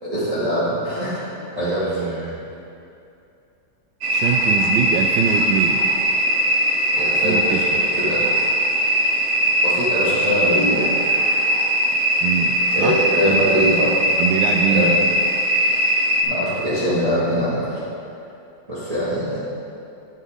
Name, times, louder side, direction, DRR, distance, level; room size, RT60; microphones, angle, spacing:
voice 1, 0.0-1.2 1.6-2.3 6.9-7.7 8.0-8.5 9.6-10.9 12.7-14.0 14.7-15.0 16.2-17.8 18.7-19.4, equal, 20° right, -11 dB, 1.9 m, -22 dB
voice 2, 1.6-2.4 4.1-5.9 7.2-7.8 12.2-13.0 13.2-13.4 14.2-14.9, right 7 dB, 85° right, 3 dB, 1.3 m, -24 dB
sound 1, 4.0-16.2, equal, 50° right, 1.1 m, -20 dB
9.6 x 8.4 x 3.7 m, 2.6 s
omnidirectional pair, 2.0 m